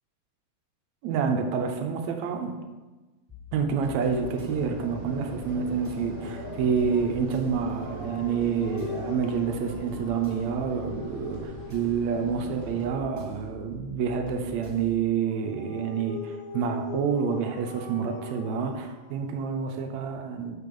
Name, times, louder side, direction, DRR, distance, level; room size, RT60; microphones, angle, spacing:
voice 1, 1.0-2.6 3.5-20.5, right 6 dB, 75° right, 4 dB, 2.1 m, -28 dB
sound 1, 3.3-15.0, left 5 dB, 15° left, 3.1 m, -46 dB
sound 2, 4.0-12.8, right 2 dB, 45° right, 0.9 m, -41 dB
Dog, 6.2-12.0 15.2-19.7, left 5 dB, 65° left, 1.9 m, -42 dB
6.8 x 6.6 x 5.3 m, 1.2 s
omnidirectional pair, 3.4 m